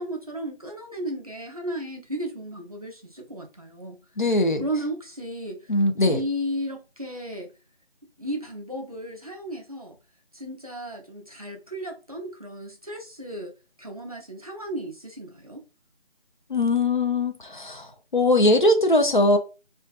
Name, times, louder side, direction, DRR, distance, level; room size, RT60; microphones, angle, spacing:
voice 1, 0.0-4.0 4.6-7.5 8.2-10.0 10.3-15.6, equal, 35° right, 0.5 m, -34 dB
voice 2, 4.2-4.7 5.7-6.2 16.5-19.4, left 2 dB, 50° left, 0.5 m, -21 dB
2.4 x 2.4 x 2.3 m
figure-of-eight pair, 160°, 32 cm